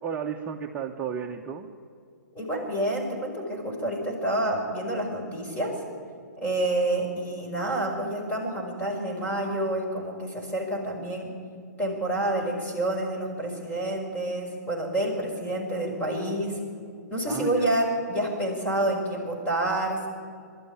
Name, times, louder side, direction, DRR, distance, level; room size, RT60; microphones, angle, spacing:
voice 1, 0.0-1.7 17.3-17.7, right 7 dB, 20° right, 0 dB, 1.2 m, -33 dB
voice 2, 2.3-5.8 6.4-11.3 11.8-16.6 17.1-20.1, right 1 dB, 15° left, 0 dB, 5.4 m, -28 dB
22.5 x 13.0 x 9.7 m, 2.3 s
hypercardioid pair, 130°, 10 cm